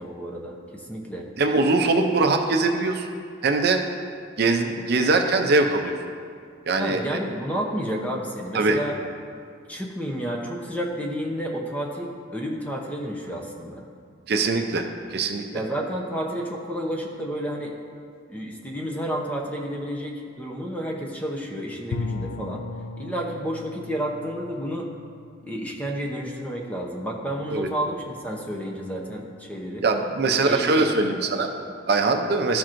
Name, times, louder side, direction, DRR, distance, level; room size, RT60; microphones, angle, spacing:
voice 1, 0.0-1.3 6.8-9.0 9.7-13.8 15.5-17.7 18.3-22.6 23.0-24.9 25.4-29.8 30.3-31.1 31.5-31.7, equal, 5° left, 0 dB, 0.7 m, -31 dB
voice 2, 1.4-3.1 3.4-3.8 4.4-5.9 6.7-7.2 8.5-8.8 14.3-15.4 27.5-27.7 29.8-31.5 31.9-32.6, right 3 dB, 55° right, 4 dB, 0.5 m, -22 dB
Bowed string instrument, 21.9-26.7, left 4 dB, 80° left, 0.4 m, -37 dB
13.0 x 5.9 x 2.5 m, 2.2 s
head